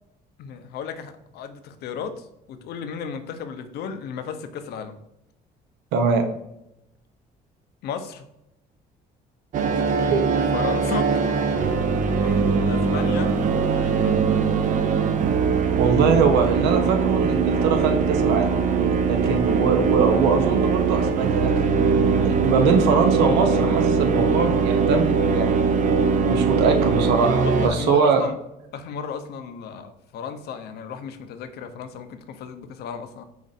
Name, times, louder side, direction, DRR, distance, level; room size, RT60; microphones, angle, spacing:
voice 1, 0.4-5.0 7.8-8.2 10.5-11.6 12.2-13.4 13.7-14.2 27.3-28.4 28.7-33.2, left 7 dB, 70° left, 9 dB, 0.6 m, -34 dB
voice 2, 5.9-6.3 10.1-10.2 15.8-18.5 19.0-21.7 22.2-25.6 26.2-28.2, right 5 dB, 90° right, 5 dB, 0.8 m, -22 dB
sound 1, 9.5-27.7, right 5 dB, 50° right, 0.5 m, -21 dB
5.1 x 2.5 x 4.0 m, 0.83 s
cardioid pair, 110°, 17 cm